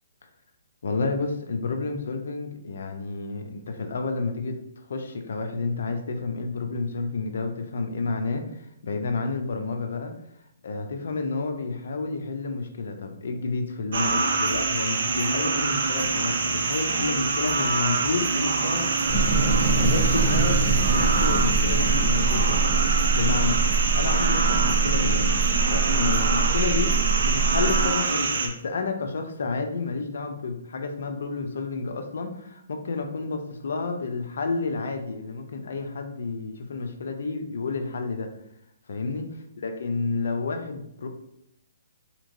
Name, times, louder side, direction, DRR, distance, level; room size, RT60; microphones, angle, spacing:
voice 1, 0.8-4.6 4.9-10.1 10.6-18.9 19.8-22.6 23.1-23.6 23.9-25.3 25.7-38.3 38.9-39.3 39.6-41.1, left 4 dB, 70° left, 5 dB, 0.5 m, -30 dB
sound 1, 13.9-28.5, right 4 dB, 65° right, 0.5 m, -25 dB
sound 2, 19.1-27.9, right 4 dB, 15° left, 0.6 m, -24 dB
3.6 x 2.9 x 2.6 m, 0.77 s
hypercardioid pair, 160°, 0 cm